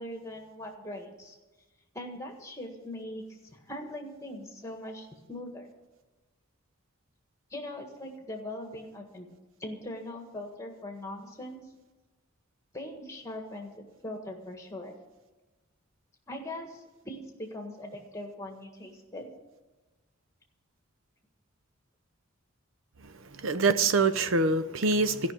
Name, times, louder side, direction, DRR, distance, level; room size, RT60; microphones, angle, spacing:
voice 1, 0.0-1.3 1.9-5.7 7.5-9.3 9.6-11.6 12.7-13.7 14.0-15.0 16.3-19.3, left 1 dB, 15° left, 3 dB, 1.7 m, -41 dB
voice 2, 23.4-25.3, right 3 dB, 65° right, 12 dB, 0.7 m, -25 dB
13.5 x 5.9 x 9.1 m, 1.2 s
head